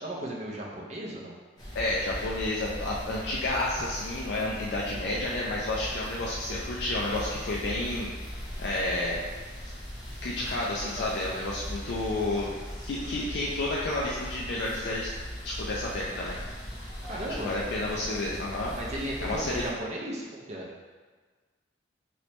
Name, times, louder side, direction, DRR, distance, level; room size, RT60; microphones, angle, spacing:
voice 1, 0.0-1.3 17.1-17.5 18.8-20.7, right 1 dB, 35° right, -2 dB, 0.5 m, -35 dB
sound 1, 1.6-19.7, equal, 20° left, 0.7 m, -39 dB
voice 2, 1.7-9.2 10.2-12.6 12.8-15.1 15.4-16.4 17.2-18.7 19.0-19.6, left 2 dB, 60° left, -4 dB, 0.4 m, -31 dB
3.1 x 3.0 x 3.0 m, 1.4 s
head